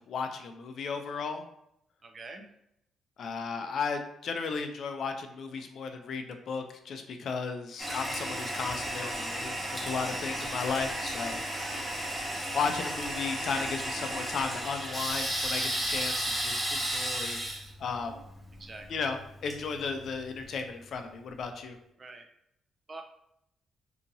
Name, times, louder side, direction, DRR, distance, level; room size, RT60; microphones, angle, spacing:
voice 1, 0.0-1.4 3.2-11.4 12.5-17.4 17.8-18.2 18.9-21.8, left 5 dB, 60° left, 6 dB, 0.4 m, -35 dB
voice 2, 2.0-2.4 10.6-10.9 11.5-11.8 18.5-19.0 22.0-22.3 22.9-23.0, right 3 dB, 35° right, 5 dB, 0.4 m, -45 dB
Toilet flush, 7.8-20.4, right 1 dB, 10° right, 0.9 m, -34 dB
2.7 x 2.6 x 2.6 m, 0.78 s
cardioid pair, 90°, 0 cm